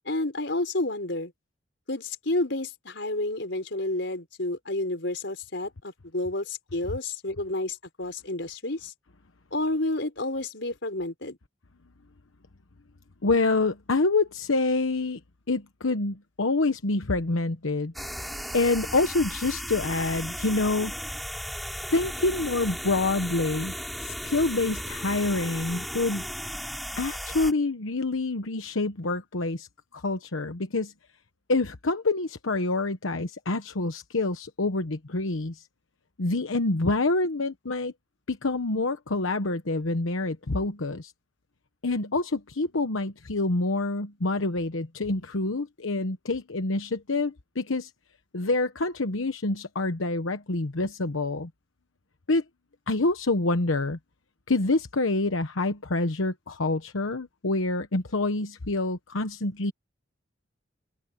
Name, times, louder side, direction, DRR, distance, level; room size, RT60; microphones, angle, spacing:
voice 1, 0.0-1.3 1.9-8.9 9.5-11.4, left 2 dB, 65° left, 4.9 m, -30 dB
voice 2, 13.2-15.2 15.5-17.9 18.5-20.9 21.9-23.7 24.0-26.2 27.0-30.9 31.5-35.6 36.2-37.9 38.3-41.1 41.8-47.9 48.3-51.5 52.3-52.4 52.9-54.0 54.5-59.7, left 2 dB, 90° left, 1.1 m, -27 dB
sound 1, 17.9-27.5, equal, ahead, 7.5 m, -35 dB
head